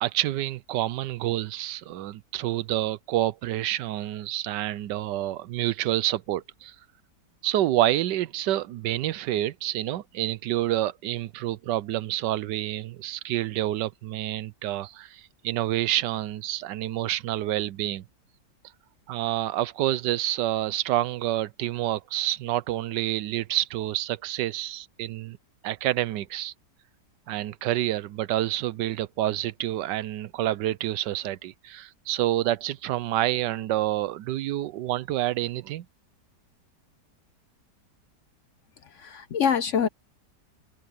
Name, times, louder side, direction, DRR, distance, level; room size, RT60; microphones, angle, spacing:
voice 1, 0.0-6.8 7.4-18.0 19.1-25.4 25.6-26.5 27.3-35.9, right 14 dB, 85° right, 1.3 m, -28 dB
voice 2, 38.8-39.9, left 7 dB, 60° left, 0.8 m, -25 dB
omnidirectional pair, 1.8 m